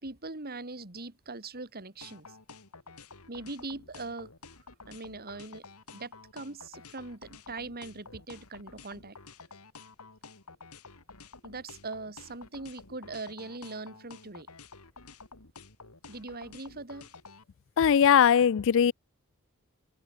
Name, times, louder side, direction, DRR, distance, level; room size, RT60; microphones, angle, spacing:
voice 1, 0.0-2.4 3.3-4.3 4.9-5.6 5.9-9.2 11.4-14.5 16.1-17.1, right 3 dB, 45° right, 2.8 m, -41 dB
sound 1, 2.0-17.4, left 4 dB, 80° left, 3.5 m, -50 dB
voice 2, 17.8-18.9, left 8 dB, 60° left, 0.4 m, -20 dB
head